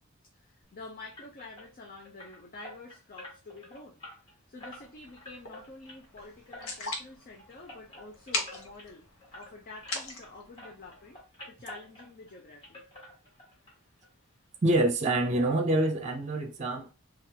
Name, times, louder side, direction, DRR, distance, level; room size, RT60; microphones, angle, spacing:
voice 1, 0.3-4.0 4.5-9.1 9.3-11.2 11.5-12.8, left 2 dB, 45° left, 0.6 m, -48 dB
sound 1, 1.1-10.3 10.6-12.4 12.6-13.7 14.0-14.1 14.5-14.6 15.0-15.1, left 1 dB, 25° left, 1.6 m, -50 dB
sound 2, 4.6-11.2, left 3 dB, 85° left, 0.9 m, -41 dB
voice 2, 14.6-16.9, right 1 dB, 35° right, 0.6 m, -26 dB
3.7 x 2.4 x 2.8 m
head